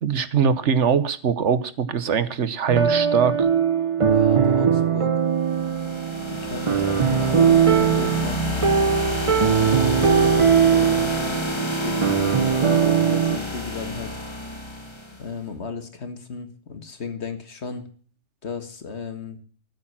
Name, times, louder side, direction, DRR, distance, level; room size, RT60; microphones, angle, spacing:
voice 1, 0.0-3.5, right 7 dB, 65° right, 15 dB, 1.3 m, -22 dB
sound 1, 2.7-13.4, right 7 dB, 30° right, 0.7 m, -20 dB
voice 2, 4.0-5.1 6.3-8.6 10.5-11.3 11.6-12.2 12.6-14.1 15.2-17.9 18.4-19.4, left 5 dB, 55° left, 9 dB, 1.9 m, -35 dB
sound 2, 5.4-15.3, left 1 dB, 20° left, 1.5 m, -29 dB
13.5 x 8.9 x 7.3 m, 0.44 s
omnidirectional pair, 1.3 m